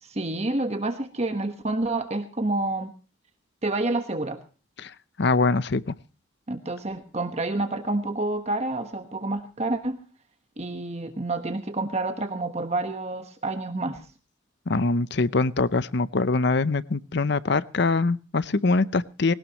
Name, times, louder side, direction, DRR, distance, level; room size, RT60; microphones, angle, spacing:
voice 1, 0.0-2.9 3.6-4.4 6.5-10.0 10.6-14.1, right 2 dB, 30° right, 7 dB, 1.3 m, -28 dB
voice 2, 5.2-5.9 14.7-19.3, left 3 dB, 55° left, 17 dB, 0.7 m, -23 dB
20.0 x 18.0 x 3.0 m, 0.35 s
head